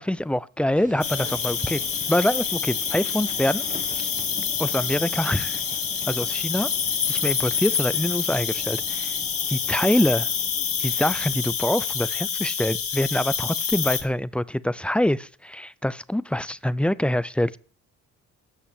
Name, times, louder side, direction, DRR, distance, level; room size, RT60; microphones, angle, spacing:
voice 1, 0.0-1.8 2.1-3.6 3.9-4.1 4.6-5.6 6.1-6.7 7.1-9.2 9.5-10.3 10.8-17.6, left 1 dB, 5° left, 0.5 m, -25 dB
sound 1, 0.7-11.6, right 3 dB, 25° right, 1.7 m, -44 dB
Cricket, 1.0-14.0, left 7 dB, 45° left, 2.3 m, -27 dB
13.5 x 5.6 x 8.2 m
cardioid pair, 90°, 30 cm